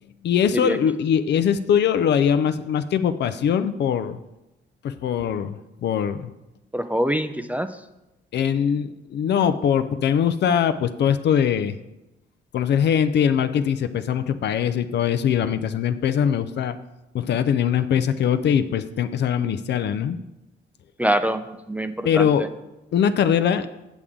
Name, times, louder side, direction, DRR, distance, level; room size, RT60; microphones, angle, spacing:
voice 1, 0.2-4.2 4.8-6.3 8.3-11.8 12.5-16.8 17.1-20.2 22.0-22.5 22.9-23.7, left 8 dB, 60° left, 10 dB, 0.5 m, -22 dB
voice 2, 6.7-7.7 21.0-21.4 21.7-22.3, right 1 dB, 5° right, 9 dB, 0.4 m, -24 dB
8.2 x 7.0 x 3.7 m, 0.96 s
cardioid pair, 90°, 20 cm